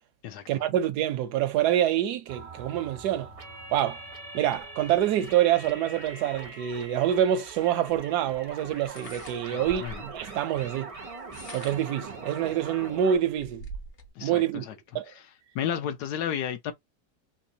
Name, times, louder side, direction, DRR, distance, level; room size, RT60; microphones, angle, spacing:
voice 1, 0.5-3.3 3.7-4.0 4.3-10.9 11.5-13.6 14.2-14.6 14.9-15.0, right 11 dB, 75° right, 1.1 m, -26 dB
sound 1, 2.3-13.2, right 3 dB, 55° right, 0.3 m, -42 dB
sound 2, 7.5-7.6 8.8-10.2 11.1-12.0 12.6-12.7 13.0-14.1, right 1 dB, 45° left, 1.3 m, -43 dB
voice 2, 9.5-10.0 14.2-14.7 15.5-16.7, left 9 dB, 70° left, 1.2 m, -32 dB
3.4 x 2.9 x 2.7 m
omnidirectional pair, 1.9 m